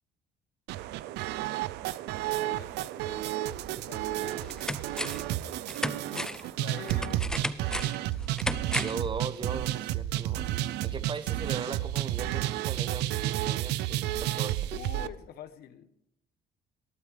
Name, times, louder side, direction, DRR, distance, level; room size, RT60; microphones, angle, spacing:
sound 1, 0.7-15.1, right 14 dB, 85° right, 0.5 m, -32 dB
voice 1, 2.4-4.8 5.9-7.5 8.0-8.1 14.7-15.9, left 9 dB, 70° left, 12 dB, 1.0 m, -47 dB
sound 2, 3.7-3.8 4.2-5.3 5.7-9.1 9.4-9.5, left 1 dB, 5° left, 0.5 m, -35 dB
voice 2, 8.8-10.5 10.8-14.7, right 5 dB, 30° right, 13 dB, 0.9 m, -38 dB
20.0 x 8.8 x 3.3 m, 0.77 s
cardioid pair, 110°, 17 cm